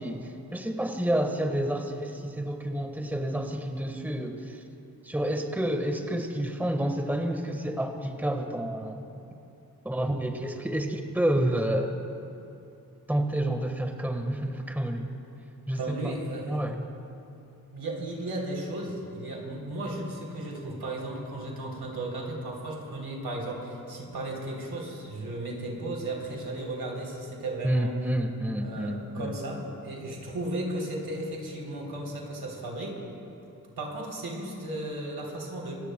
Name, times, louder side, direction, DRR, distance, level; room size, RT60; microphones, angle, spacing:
voice 1, 0.0-4.6 5.0-9.0 9.8-11.9 13.1-15.1 15.7-16.2 16.4-16.8 27.6-29.3, right 1 dB, 5° right, 4 dB, 1.4 m, -29 dB
voice 2, 15.8-16.6 17.7-28.0 28.6-33.0 33.8-35.8, right 1 dB, 75° right, -2 dB, 3.4 m, -35 dB
26.0 x 18.5 x 2.3 m, 2.8 s
cardioid pair, 45°, 38 cm